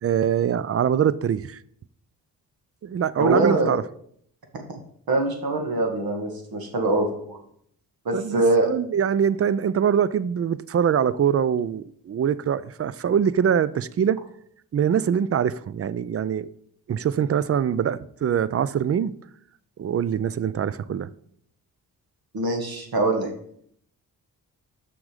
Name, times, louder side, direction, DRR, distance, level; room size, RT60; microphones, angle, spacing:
voice 1, 0.0-1.6 2.8-3.8 8.1-8.4 8.6-14.2 14.7-16.5 16.9-19.1 19.8-21.1, right 8 dB, 35° right, 0.5 m, -23 dB
voice 2, 3.2-3.7 4.5-4.6 5.1-7.4 8.1-8.7 22.3-23.3, right 2 dB, 60° right, 2.0 m, -23 dB
6.2 x 6.1 x 5.0 m
supercardioid pair, 50°, 41 cm